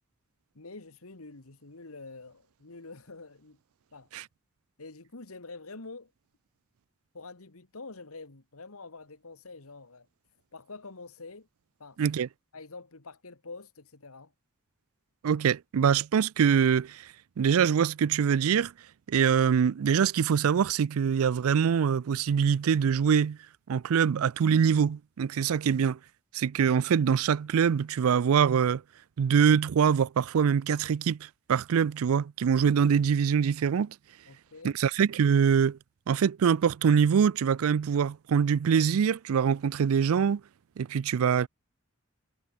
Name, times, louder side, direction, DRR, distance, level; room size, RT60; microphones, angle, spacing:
voice 1, 0.6-3.6 3.9-4.1 4.8-6.1 7.1-10.1 10.5-11.5 11.8-12.0 12.5-14.3 34.3-34.8, left 3 dB, 85° left, 1.8 m, -46 dB
voice 2, 12.0-12.3 15.2-17.1 17.4-18.7 19.1-23.4 23.7-26.0 26.3-28.8 29.2-34.0 34.6-35.8 36.1-40.4 40.8-41.5, right 7 dB, 80° right, 0.4 m, -24 dB
head